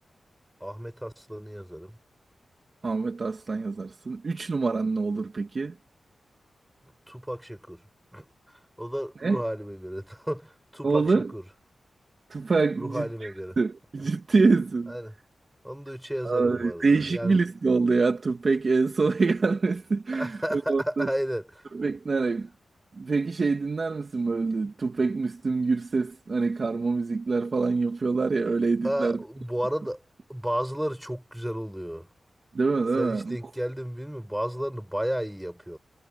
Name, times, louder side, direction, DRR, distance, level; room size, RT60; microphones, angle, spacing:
voice 1, 0.6-2.0 7.1-7.9 8.1-11.4 12.8-13.6 14.9-15.1 15.6-17.3 20.1-21.7 28.8-30.0 30.3-32.1 33.0-35.8, equal, 5° right, 7.7 m, -33 dB
voice 2, 2.8-5.7 9.2-9.4 10.8-11.3 12.3-13.3 13.6-14.9 16.2-21.1 21.7-22.5 23.0-29.2 32.5-33.4, right 4 dB, 45° right, 2.6 m, -25 dB
wide cardioid pair, 150°, 0 cm